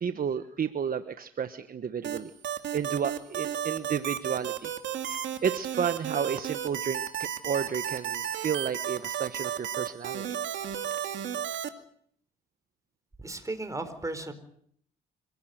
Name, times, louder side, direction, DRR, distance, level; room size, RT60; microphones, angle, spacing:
voice 1, 0.0-2.3 2.7-4.7 5.1-10.3, right 7 dB, 45° right, 10 dB, 1.2 m, -32 dB
sound 1, 2.0-11.7, right 10 dB, 70° right, 2.3 m, -33 dB
voice 2, 13.2-14.3, right 2 dB, 15° right, 9 dB, 4.4 m, -35 dB
26.5 x 16.5 x 7.9 m, 0.66 s
cardioid pair, 90°, 20 cm